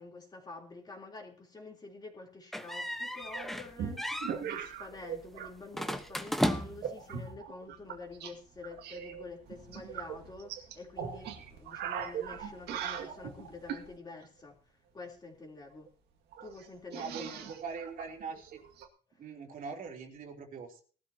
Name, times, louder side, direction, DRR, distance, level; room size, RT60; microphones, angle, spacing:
voice 1, 0.0-15.9 16.4-17.4 19.1-19.2, left 3 dB, 25° left, 3.5 m, -48 dB
sound 1, 2.5-3.7 4.0-4.4 5.7-6.9, equal, ahead, 1.1 m, -34 dB
sound 2, 3.3-5.5 5.8-6.2 6.8-8.3 8.6-13.9 15.6-15.7 15.9-16.0 16.3-18.9, right 8 dB, 75° right, 2.1 m, -40 dB
voice 2, 16.9-18.6 19.2-20.8, right 5 dB, 55° right, 3.1 m, -42 dB
19.0 x 13.0 x 2.9 m
cardioid pair, 110°, 17 cm